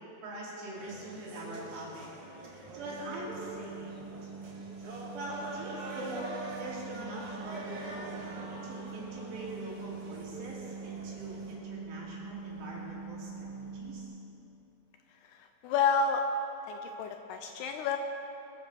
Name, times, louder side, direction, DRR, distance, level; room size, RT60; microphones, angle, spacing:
voice 1, 0.2-2.1 2.4-4.1 5.1-6.2 6.6-14.1, right 1 dB, 70° right, -5 dB, 5.1 m, -43 dB
sound 1, 0.8-11.5, right 2 dB, 45° right, 2.0 m, -44 dB
sound 2, 2.8-14.0, right 4 dB, 20° left, 3.9 m, -44 dB
voice 2, 15.2-16.2 16.7-18.0, left 5 dB, 80° left, 5 dB, 2.6 m, -30 dB
22.0 x 8.7 x 7.0 m, 2.9 s
omnidirectional pair, 5.2 m